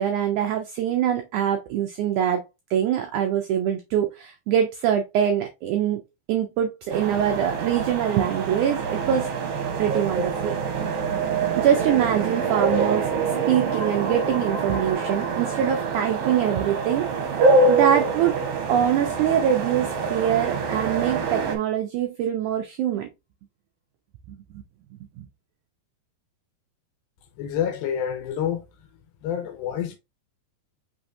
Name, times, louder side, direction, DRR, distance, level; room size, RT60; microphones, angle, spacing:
voice 1, 0.0-6.0 6.3-9.3 9.8-10.9 11.6-13.1 13.5-17.1 17.7-18.3 18.7-23.1 24.3-24.4 25.2-25.3, right 9 dB, 90° right, 1.7 m, -24 dB
sound 1, 6.9-21.6, right 4 dB, 65° right, 1.5 m, -25 dB
sound 2, 13.7-19.3, left 3 dB, 60° left, 2.2 m, -43 dB
voice 2, 27.4-28.6 29.2-30.0, left 9 dB, 80° left, 2.6 m, -27 dB
6.0 x 3.4 x 2.6 m
omnidirectional pair, 4.3 m